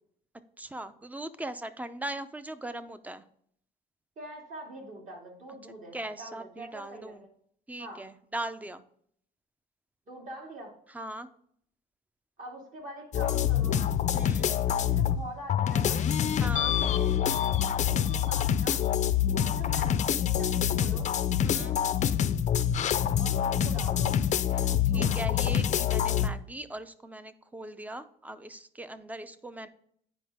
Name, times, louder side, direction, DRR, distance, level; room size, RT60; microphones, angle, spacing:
voice 1, 0.6-3.2 5.9-7.2 7.7-8.8 10.9-11.3 14.1-14.5 16.4-16.7 21.4-21.8 24.5-24.7 24.9-29.7, right 1 dB, 10° right, 12 dB, 0.5 m, -39 dB
voice 2, 4.2-7.3 7.8-8.0 10.1-10.7 12.4-13.9 14.7-16.0 16.9-17.2 17.8-18.9 19.3-21.1 21.5-21.8 23.2-24.1 24.9-25.3, right 1 dB, 50° right, -1 dB, 2.7 m, -44 dB
sound 1, 13.1-15.2 15.5-26.3, left 9 dB, 45° left, 0.5 m, -26 dB
9.1 x 5.1 x 3.5 m, 0.65 s
cardioid pair, 110°, 17 cm